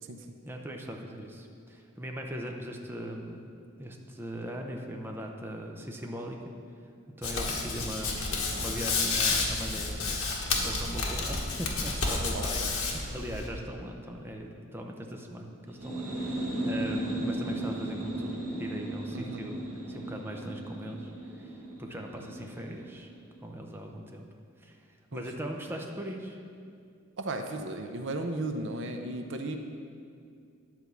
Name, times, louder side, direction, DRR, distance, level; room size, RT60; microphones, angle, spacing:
voice 1, 0.5-3.5 3.8-6.4 7.2-21.1 21.4-23.1 23.4-24.3 24.6-24.8 25.1-26.4, equal, 10° right, 1 dB, 0.6 m, -40 dB
Hands, 7.2-13.5, left 3 dB, 80° left, 1.4 m, -30 dB
voice 2, 12.3-12.8 19.1-19.4 22.2-22.5 25.1-25.3 27.2-29.6, right 2 dB, 60° right, 5 dB, 0.6 m, -36 dB
sound 1, 15.7-23.2, right 1 dB, 90° right, 1.8 m, -36 dB
10.0 x 4.7 x 6.9 m, 2.3 s
head